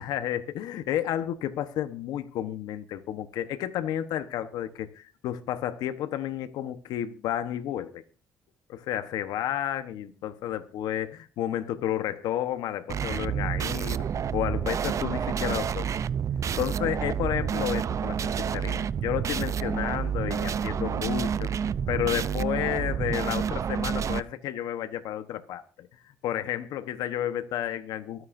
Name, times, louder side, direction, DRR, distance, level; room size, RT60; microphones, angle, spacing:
voice 1, 0.0-8.0 8.7-14.0 14.3-15.9 16.6-21.5 21.9-25.9 26.2-28.3, left 11 dB, 80° left, 1.1 m, -31 dB
sound 1, 12.9-24.2, right 7 dB, 50° right, 0.5 m, -29 dB
24.0 x 9.5 x 2.7 m
supercardioid pair, 70°, 7 cm